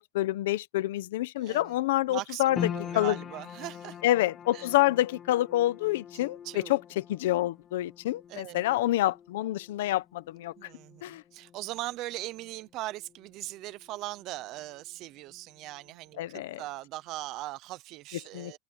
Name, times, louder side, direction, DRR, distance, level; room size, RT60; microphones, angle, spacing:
voice 1, 0.0-2.6 2.9-3.2 4.0-10.5 11.0-11.2 16.2-16.6 18.3-18.6, left 15 dB, 75° left, 1.0 m, -27 dB
voice 2, 1.4-1.8 2.1-4.0 4.5-4.7 6.4-6.7 8.3-8.6 10.6-18.6, right 17 dB, 35° right, 0.8 m, -40 dB
sound 1, 2.6-15.0 15.2-16.2 16.6-16.7, left 9 dB, 20° left, 0.7 m, -43 dB
open air
supercardioid pair, 180°, 0 cm